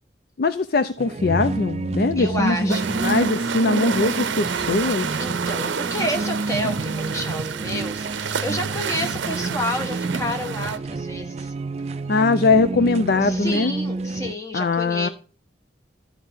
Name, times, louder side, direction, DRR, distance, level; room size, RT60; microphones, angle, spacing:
voice 1, 0.4-5.2 12.1-13.7 14.5-15.1, left 3 dB, 55° left, 12 dB, 0.4 m, -21 dB
sound 1, 1.0-14.3, right 3 dB, 35° right, 0.3 m, -29 dB
voice 2, 2.2-2.9 5.2-11.5 13.2-15.1, left 1 dB, 15° left, 3 dB, 1.3 m, -30 dB
sound 2, 2.7-10.8, right 6 dB, 85° right, 0.6 m, -29 dB
12.5 x 4.7 x 5.5 m, 0.39 s
head